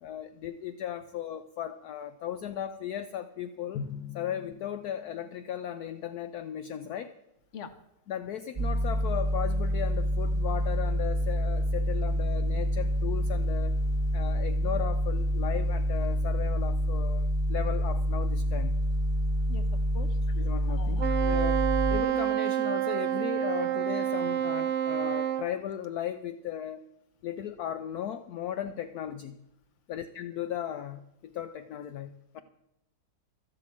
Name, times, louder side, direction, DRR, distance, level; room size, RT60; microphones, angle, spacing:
voice 1, 0.0-3.8 4.1-7.1 8.1-13.8 14.1-18.8 20.3-26.8 27.2-29.4 29.9-32.4, left 10 dB, 70° left, 10 dB, 1.1 m, -36 dB
Drum, 3.7-5.9, left 6 dB, 85° left, 2.1 m, -42 dB
sound 1, 8.6-22.0, equal, 30° right, 0.5 m, -27 dB
voice 2, 19.5-20.2 20.8-21.1, left 5 dB, 50° left, 10 dB, 1.3 m, -43 dB
Wind instrument woodwind instrument, 21.0-25.5, right 11 dB, 55° right, 0.8 m, -28 dB
13.0 x 8.0 x 8.7 m, 0.85 s
omnidirectional pair, 1.9 m